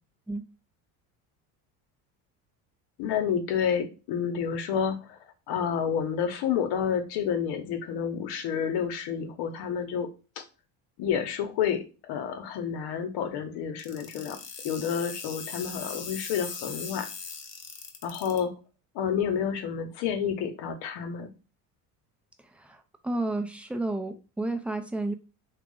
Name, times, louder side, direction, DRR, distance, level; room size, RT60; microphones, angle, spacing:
voice 1, 3.0-5.2 5.5-10.1 10.4-10.5 11.0-14.4 14.6-17.1 18.0-18.5 18.9-21.3, left 8 dB, 65° left, 7 dB, 1.0 m, -29 dB
sound 1, 13.8-18.4, left 5 dB, 35° left, 0.9 m, -39 dB
voice 2, 22.6-25.1, right 2 dB, 5° right, 6 dB, 0.4 m, -31 dB
3.0 x 2.4 x 3.7 m, 0.32 s
supercardioid pair, 95°, 43 cm